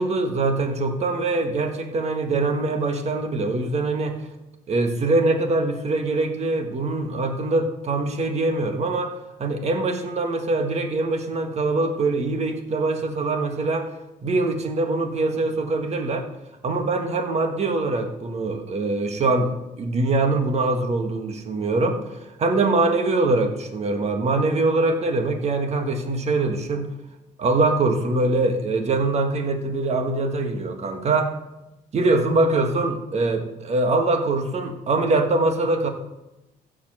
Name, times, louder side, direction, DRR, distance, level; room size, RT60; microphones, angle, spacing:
voice 1, 0.0-4.2 4.7-13.9 14.2-16.3 16.6-22.0 22.4-26.9 27.4-31.3 31.9-35.9, right 2 dB, 40° right, 5 dB, 1.6 m, -23 dB
15.0 x 5.1 x 6.3 m, 0.98 s
cardioid pair, 110°, 17 cm